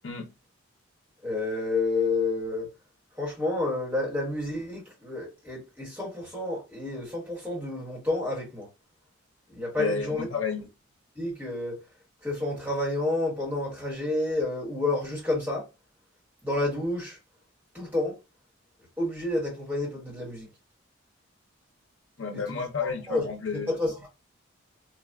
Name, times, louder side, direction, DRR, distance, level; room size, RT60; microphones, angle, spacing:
voice 1, 1.2-2.7 3.2-8.7 9.5-10.3 11.1-11.8 12.2-15.6 16.4-17.2 17.7-18.2 19.0-20.5 22.3-22.6 23.1-23.3 23.7-24.1, left 2 dB, 10° right, 1.4 m, -29 dB
voice 2, 9.8-10.6 22.2-23.7, left 4 dB, 65° left, 0.7 m, -31 dB
3.8 x 2.3 x 2.3 m
head